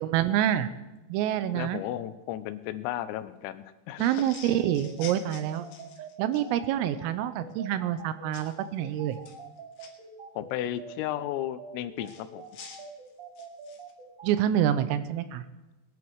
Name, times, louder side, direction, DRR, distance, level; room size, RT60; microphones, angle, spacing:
voice 1, 0.0-0.7 1.1-1.8 4.0-5.7 6.2-9.2 14.2-15.4, right 11 dB, 85° right, 12 dB, 3.4 m, -27 dB
voice 2, 1.5-4.2 10.4-12.4, left 13 dB, 85° left, 13 dB, 3.4 m, -34 dB
sound 1, 4.0-6.5 8.3-8.6 9.1-9.9 12.0-13.9, left 6 dB, 70° left, 3.7 m, -47 dB
sound 2, 4.4-14.3, right 4 dB, 30° right, 6.2 m, -45 dB
20.5 x 10.5 x 4.7 m, 1.0 s
omnidirectional pair, 5.9 m